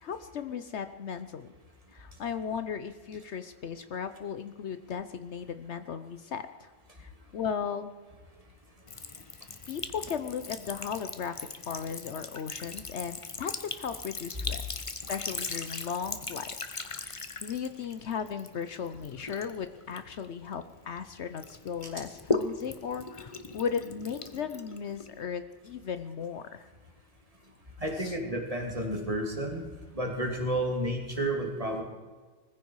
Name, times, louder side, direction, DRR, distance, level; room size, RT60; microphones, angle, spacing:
voice 1, 0.0-1.5 1.9-6.7 7.0-7.9 9.7-11.4 11.7-16.5 17.0-26.7 27.9-28.2, left 7 dB, 65° left, 10 dB, 1.0 m, -36 dB
Sink (filling or washing) / Trickle dribble, 8.9-21.0 21.4-25.2, left 3 dB, 30° left, 0.9 m, -39 dB
voice 2, 27.8-29.7 29.9-31.8, right 1 dB, 25° right, 1 dB, 2.8 m, -31 dB
20.5 x 15.0 x 4.7 m, 1.4 s
omnidirectional pair, 1.3 m